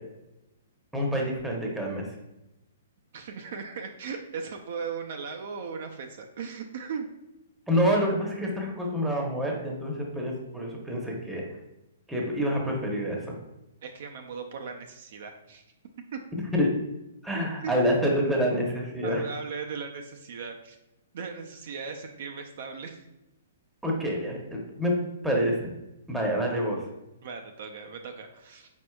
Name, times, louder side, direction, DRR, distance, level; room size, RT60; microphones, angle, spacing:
voice 1, 0.9-2.1 7.7-11.4 12.1-13.4 16.5-16.7 17.2-19.2 23.8-24.9 25.2-25.7 26.1-26.8, equal, 5° right, -1 dB, 0.9 m, -27 dB
voice 2, 3.1-7.1 13.8-15.6 16.1-16.2 17.3-17.7 19.0-20.8 21.1-23.1 27.2-28.7, right 5 dB, 60° right, 3 dB, 0.4 m, -37 dB
4.4 x 4.1 x 2.3 m, 0.93 s
hypercardioid pair, 140°, 0 cm